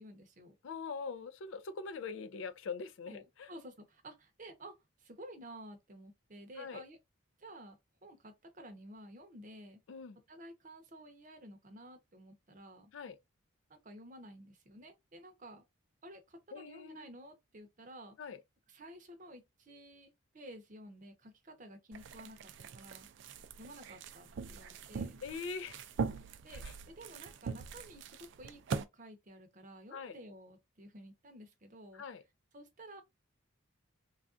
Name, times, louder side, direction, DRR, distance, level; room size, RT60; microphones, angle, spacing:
voice 1, 0.0-0.6 3.1-7.0 7.4-7.8 8.0-9.8 10.3-12.9 13.7-15.7 16.0-18.2 18.7-23.1 23.6-25.2 26.4-32.0 32.5-33.0, right 1 dB, 40° right, 0.7 m, -52 dB
voice 2, 0.6-3.5 6.6-6.8 9.9-10.2 12.9-13.2 16.5-17.1 18.2-18.4 25.2-25.9 26.5-26.7 29.9-30.2 31.9-32.2, left 5 dB, 65° left, 0.4 m, -43 dB
sound 1, 21.9-28.8, right 5 dB, 60° right, 0.3 m, -42 dB
3.3 x 2.4 x 2.5 m
head